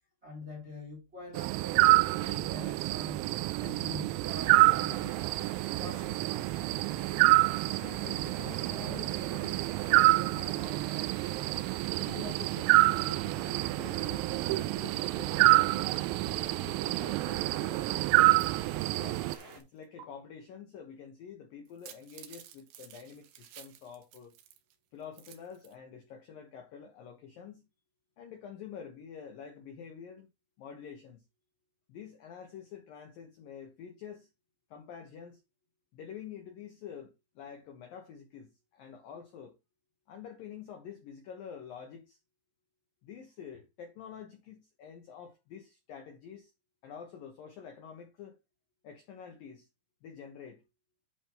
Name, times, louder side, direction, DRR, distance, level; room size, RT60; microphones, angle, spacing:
voice 1, 0.2-3.2 3.6-5.2 5.8-6.3, left 1 dB, 25° right, 1.6 m, -45 dB
sound 1, 1.4-19.4, right 20 dB, 90° right, 3.3 m, -27 dB
sound 2, 4.2-19.6, right 3 dB, 50° right, 1.5 m, -49 dB
voice 2, 7.7-11.2 12.0-18.4 18.9-19.3 19.6-24.4 24.9-27.7 28.2-30.3 30.6-31.2 31.9-34.3 34.7-35.4 35.9-39.6 40.1-42.2 43.0-46.5 46.8-48.4 48.8-49.7 50.0-50.6, left 7 dB, 75° left, 2.1 m, -48 dB
sound 3, 18.3-19.6 20.0-20.1 21.7-24.7 25.0-25.7, right 11 dB, 70° right, 3.0 m, -53 dB
10.5 x 3.6 x 4.3 m
omnidirectional pair, 6.0 m